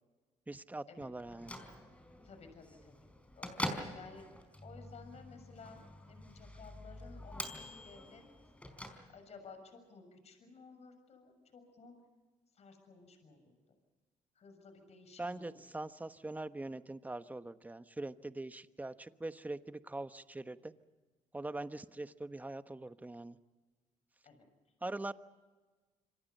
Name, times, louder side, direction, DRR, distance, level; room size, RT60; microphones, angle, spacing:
voice 1, 0.5-1.6 15.2-20.7 21.3-23.4 24.8-25.1, right 2 dB, 10° right, 11 dB, 1.1 m, -42 dB
Bell / Microwave oven, 1.2-9.5, left 1 dB, 10° left, 4.6 m, -45 dB
voice 2, 2.2-2.9 3.4-4.2 4.6-5.8 6.1-8.2 9.1-11.9 12.6-13.5 14.4-15.6 24.2-24.3, left 4 dB, 55° left, 7 dB, 6.7 m, -55 dB
28.0 x 25.0 x 5.5 m, 1.3 s
cardioid pair, 85°, 13 cm